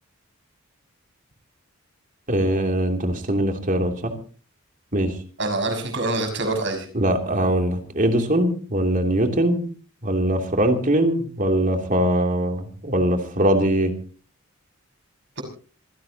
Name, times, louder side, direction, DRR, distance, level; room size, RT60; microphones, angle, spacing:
voice 1, 2.3-4.2 4.9-5.1 6.9-9.6 10.0-13.9, right 1 dB, 40° right, 5 dB, 2.9 m, -21 dB
voice 2, 5.4-6.9, right 2 dB, 60° right, 5 dB, 6.3 m, -25 dB
26.5 x 16.0 x 2.9 m, 0.37 s
head